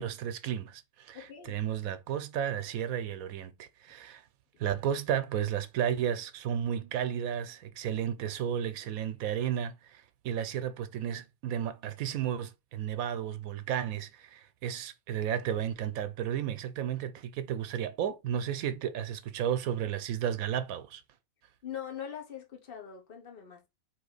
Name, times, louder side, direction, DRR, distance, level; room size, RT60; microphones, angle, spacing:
voice 1, 0.0-1.2 1.4-4.2 4.6-21.0, right 9 dB, 90° right, 1.0 m, -33 dB
voice 2, 1.1-1.6 21.6-23.7, left 9 dB, 45° left, 1.2 m, -42 dB
4.1 x 2.9 x 3.9 m
omnidirectional pair, 1.5 m